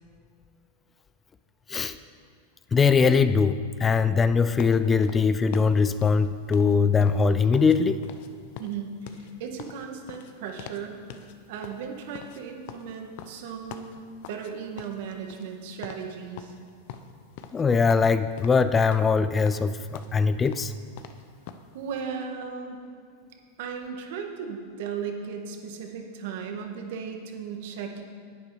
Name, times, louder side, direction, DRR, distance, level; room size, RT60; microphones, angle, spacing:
voice 1, 2.7-8.0 17.5-20.7, left 5 dB, 20° left, 13 dB, 0.4 m, -21 dB
sound 1, 4.6-7.8 8.0-8.3 8.5-10.8 11.1-11.3 11.6-14.5 14.8-15.6 15.8-16.1 16.4-17.6 17.9-18.6 18.9-21.7, left 8 dB, 60° left, 0.8 m, -43 dB
voice 2, 8.6-10.9 11.5-14.0 14.3-16.5 21.7-22.8 23.6-28.0, right 6 dB, 65° right, 3 dB, 1.7 m, -36 dB
10.5 x 9.0 x 4.9 m, 2.2 s
hypercardioid pair, 115°, 0 cm